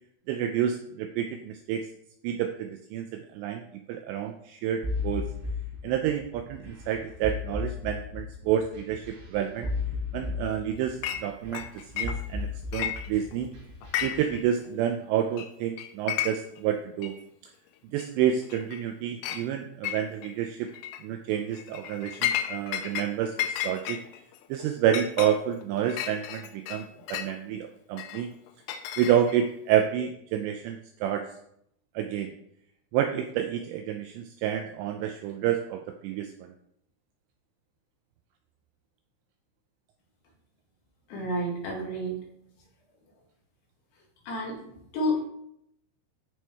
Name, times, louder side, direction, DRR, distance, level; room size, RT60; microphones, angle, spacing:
voice 1, 0.3-1.9 2.2-3.6 3.9-5.3 5.8-9.7 10.1-13.5 14.0-17.2 17.9-20.7 21.0-24.0 24.5-28.3 29.0-31.3 32.0-32.3 32.9-36.5, right 10 dB, 90° right, 5 dB, 2.5 m, -29 dB
sound 1, 4.8-14.4, left 4 dB, 70° right, 4.8 m, -35 dB
Chink clink, 11.0-11.2 11.5-12.4 12.7-13.4 13.8-14.4 14.7-14.8 15.4-15.5 15.8-16.6 17.0-17.1 18.0-18.1 18.5-18.9 19.2-19.4 19.8-20.3 20.7-21.0 21.5-23.1 23.4-27.3 28.0-29.5, left 10 dB, 85° left, 3.0 m, -33 dB
voice 2, 41.1-42.2 44.2-45.2, equal, 65° left, -3 dB, 3.9 m, -30 dB
13.0 x 4.6 x 3.5 m, 0.72 s
omnidirectional pair, 5.6 m